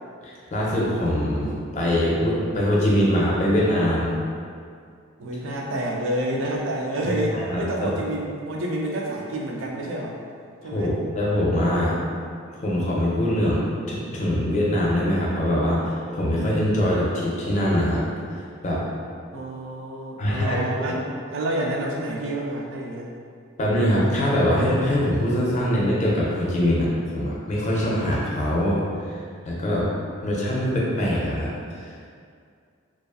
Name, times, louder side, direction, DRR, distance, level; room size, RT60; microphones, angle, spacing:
voice 1, 0.2-4.1 7.0-7.9 10.6-12.0 12.6-18.0 18.6-18.8 20.2-21.0 23.6-28.8 29.1-29.2 29.4-29.9 30.2-32.1, equal, 35° left, -5 dB, 0.4 m, -23 dB
voice 2, 5.2-10.2 10.6-10.9 19.3-23.1, right 1 dB, 70° right, -1 dB, 0.4 m, -28 dB
2.4 x 2.4 x 2.4 m, 2.2 s
head